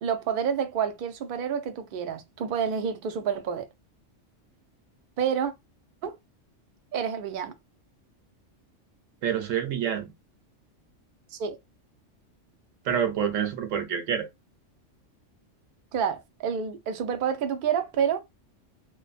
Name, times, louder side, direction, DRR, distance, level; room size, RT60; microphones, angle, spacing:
voice 1, 0.0-3.7 5.2-5.5 6.0-6.1 6.9-7.5 11.3-11.6 15.9-18.2, right 7 dB, 60° right, 0.6 m, -28 dB
voice 2, 9.2-10.1 12.9-14.3, right 8 dB, 85° right, 1.1 m, -27 dB
2.5 x 2.2 x 2.4 m
omnidirectional pair, 1.3 m